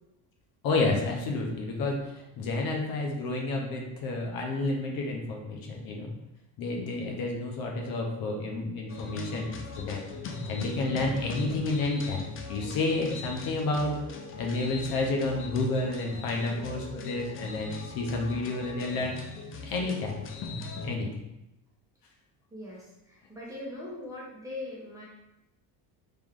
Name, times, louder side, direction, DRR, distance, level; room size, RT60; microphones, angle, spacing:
voice 1, 0.6-6.1 6.6-10.0 10.5-14.0 14.4-19.2 19.6-20.2 20.8-21.1, left 2 dB, 65° left, 0 dB, 0.9 m, -30 dB
sound 1, 8.9-20.9, left 3 dB, 35° left, 0.5 m, -40 dB
voice 2, 22.5-25.0, left 2 dB, 10° right, -6 dB, 1.1 m, -41 dB
3.4 x 3.0 x 3.7 m, 0.89 s
cardioid pair, 150°, 39 cm